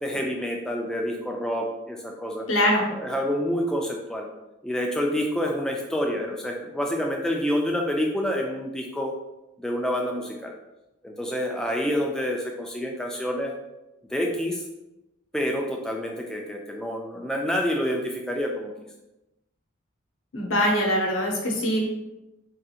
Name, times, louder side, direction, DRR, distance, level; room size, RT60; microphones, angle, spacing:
voice 1, 0.0-2.5 2.9-4.3 4.6-9.1 9.6-10.5 11.0-13.5 14.1-14.6 15.3-18.7, equal, 5° left, 0 dB, 0.3 m, -28 dB
voice 2, 2.5-2.9 20.3-21.9, equal, 80° left, 0 dB, 0.7 m, -23 dB
3.6 x 2.4 x 2.7 m, 0.97 s
head